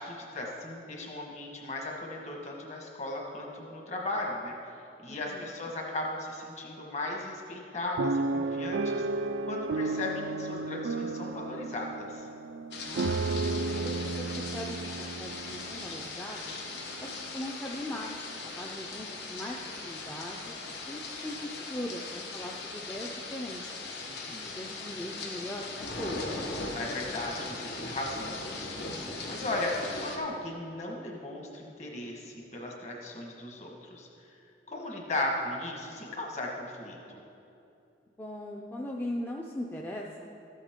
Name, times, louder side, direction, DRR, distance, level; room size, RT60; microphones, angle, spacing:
voice 1, 0.0-4.5 5.0-12.3 24.0-24.7 26.7-34.1 34.7-37.2, left 2 dB, 40° left, 0 dB, 1.4 m, -37 dB
voice 2, 5.1-5.4 12.9-16.5 17.0-20.5 20.9-23.6 24.3-26.2 38.2-40.3, left 1 dB, 10° left, -1 dB, 0.4 m, -40 dB
sound 1, 8.0-16.1 16.7-16.8 17.0-17.3, right 3 dB, 85° right, 0.3 m, -33 dB
sound 2, 12.7-30.2, left 3 dB, 75° left, 1.1 m, -39 dB
13.0 x 8.4 x 3.7 m, 2.7 s
head